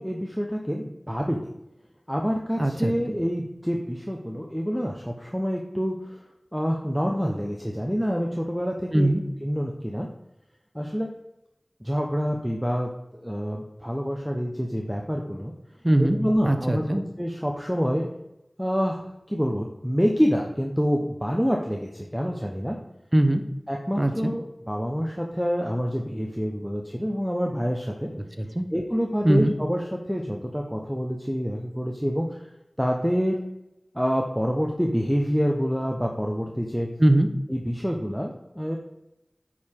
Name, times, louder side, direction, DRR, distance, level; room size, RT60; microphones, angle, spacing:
voice 1, 0.0-1.5 2.1-6.2 6.5-9.1 9.4-10.1 10.7-11.1 11.8-12.9 13.2-15.5 16.0-16.8 17.2-18.1 18.6-22.8 23.7-28.1 28.7-32.4 32.8-33.4 33.9-36.9 37.5-38.8, equal, ahead, 0 dB, 1.0 m, -27 dB
voice 2, 2.6-3.2 8.9-9.2 15.8-17.0 23.1-23.4 24.0-24.3 28.1-28.7 29.2-29.5 37.0-37.3, right 1 dB, 25° right, 7 dB, 0.9 m, -22 dB
8.8 x 5.0 x 3.7 m, 0.91 s
wide cardioid pair, 45°, 0 cm